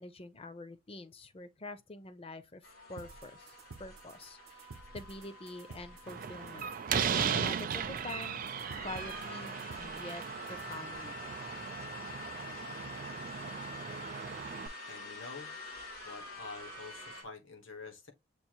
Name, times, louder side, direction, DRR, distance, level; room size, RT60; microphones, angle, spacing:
voice 1, 0.0-4.7 4.9-8.4 8.8-10.2 10.5-11.2, left 2 dB, 25° left, 0.5 m, -46 dB
sound 1, 2.6-17.2, left 2 dB, 85° left, 2.4 m, -48 dB
sound 2, 3.0-11.0, right 3 dB, 80° right, 0.6 m, -53 dB
Slam, 6.1-14.7, right 7 dB, 40° right, 0.4 m, -37 dB
voice 2, 14.8-15.5 16.0-18.1, left 4 dB, 70° left, 1.3 m, -47 dB
6.8 x 2.4 x 3.0 m
head